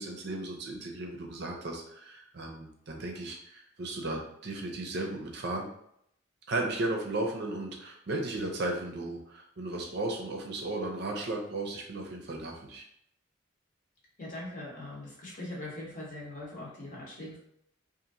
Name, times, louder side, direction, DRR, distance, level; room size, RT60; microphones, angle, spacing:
voice 1, 0.0-5.7 6.5-12.8, right 2 dB, 50° right, 1 dB, 0.5 m, -35 dB
voice 2, 14.2-17.4, left 1 dB, 40° left, -4 dB, 0.8 m, -41 dB
2.8 x 2.5 x 2.5 m, 0.74 s
head